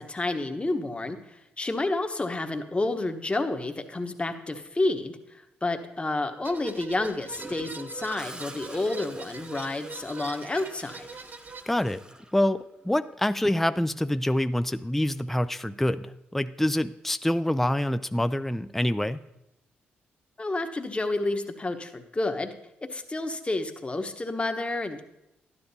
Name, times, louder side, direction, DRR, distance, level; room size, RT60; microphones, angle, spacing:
voice 1, 0.0-11.1 20.4-22.5 22.8-25.0, left 2 dB, 25° left, 7 dB, 1.1 m, -30 dB
sound 1, 6.4-11.6, right 4 dB, 45° right, 0.8 m, -42 dB
Gurgling / Toilet flush, 7.4-13.1 15.1-15.3, right 1 dB, 20° right, 1.1 m, -46 dB
voice 2, 11.7-12.0 12.3-19.2, left 1 dB, 5° left, 12 dB, 0.4 m, -26 dB
12.0 x 10.0 x 2.8 m, 0.89 s
supercardioid pair, 50°, 5 cm